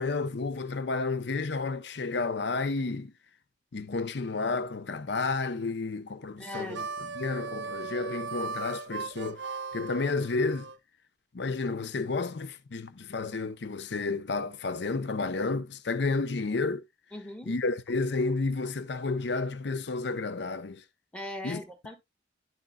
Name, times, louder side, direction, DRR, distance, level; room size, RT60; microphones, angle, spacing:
voice 1, 0.0-3.1 3.7-6.9 7.1-9.4 9.7-10.7 11.3-16.8 17.5-20.8 21.4-21.6, left 3 dB, 65° left, 0.6 m, -31 dB
voice 2, 6.4-6.9 17.1-17.5 21.1-22.0, left 1 dB, 5° left, 1.3 m, -39 dB
Harmonica, 6.5-10.8, right 5 dB, 75° right, 0.6 m, -38 dB
11.0 x 6.5 x 2.2 m
head